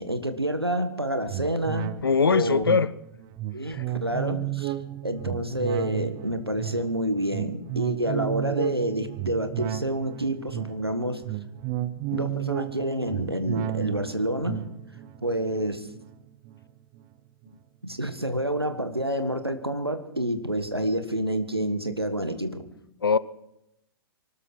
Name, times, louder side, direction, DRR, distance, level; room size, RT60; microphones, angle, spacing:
voice 1, 0.0-1.9 2.2-2.6 3.5-4.7 5.0-11.2 12.1-14.6 15.2-15.9 17.8-22.7, right 1 dB, 90° right, 1.6 m, -28 dB
sound 1, 1.3-17.0 17.4-17.5, right 13 dB, 25° right, 0.7 m, -33 dB
voice 2, 2.0-2.9 3.7-3.8 23.0-23.2, left 5 dB, 70° left, 0.7 m, -21 dB
24.0 x 13.0 x 4.6 m
figure-of-eight pair, 115°, 13 cm